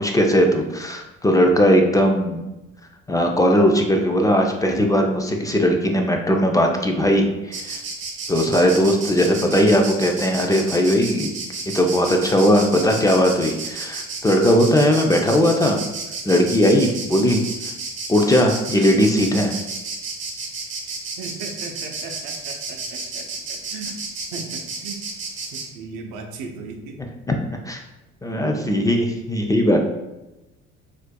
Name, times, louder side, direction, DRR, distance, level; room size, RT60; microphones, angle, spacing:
voice 1, 0.0-2.4 3.1-7.8 8.3-11.3 11.7-15.8 16.2-17.4 18.1-19.5 27.3-27.4 27.6-27.8 28.2-29.8, equal, 10° left, 2 dB, 0.4 m, -18 dB
Insect, 7.5-25.7, right 3 dB, 40° right, 0.9 m, -31 dB
voice 2, 21.2-24.0 24.3-25.0 25.5-27.0 28.6-28.7, right 4 dB, 85° right, 3 dB, 0.6 m, -37 dB
4.2 x 2.5 x 2.2 m, 1.0 s
supercardioid pair, 90°, 29 cm